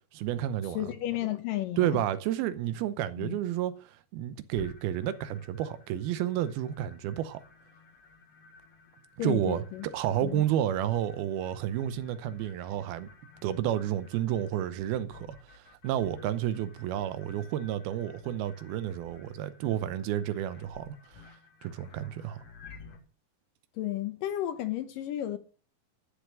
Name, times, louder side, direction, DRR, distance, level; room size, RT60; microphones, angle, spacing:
voice 1, 0.1-0.8 1.8-7.4 9.2-9.6 9.9-13.1 13.4-21.0 21.6-22.4, right 11 dB, 80° right, 2.7 m, -31 dB
voice 2, 0.7-2.0 3.2-3.4 9.2-9.9 10.2-10.4 23.8-25.4, left 12 dB, 70° left, 2.3 m, -33 dB
sound 1, 4.6-23.0, left 4 dB, 50° left, 2.5 m, -54 dB
13.0 x 6.8 x 7.5 m
omnidirectional pair, 4.5 m